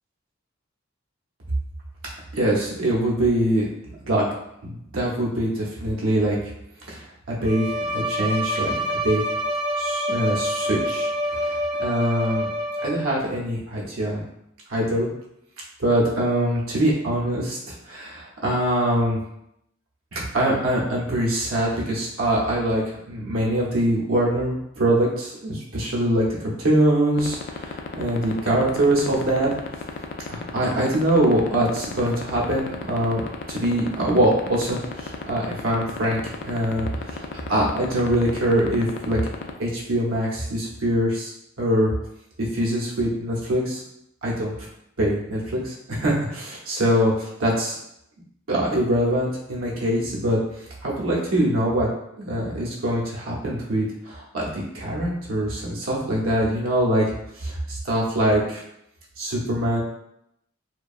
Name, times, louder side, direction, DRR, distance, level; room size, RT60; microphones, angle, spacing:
voice 1, 2.3-3.7 4.0-4.3 4.6-6.4 6.9-8.7 9.0-9.2 9.8-12.5 12.8-14.2 14.7-15.1 15.8-19.2 20.1-29.5 30.3-33.2 33.5-39.2 39.6-41.3 41.6-41.9 42.5-43.8 44.2-44.5 45.0-47.8 48.5-50.4 50.8-51.9 52.2-57.0 57.4-58.6 59.2-59.8, right 1 dB, 85° right, -4 dB, 0.8 m, -23 dB
Bowed string instrument, 7.4-13.2, equal, 60° right, 0.4 m, -27 dB
sound 1, 27.2-39.5, left 5 dB, 55° left, 0.3 m, -31 dB
2.6 x 2.2 x 2.4 m, 0.79 s
head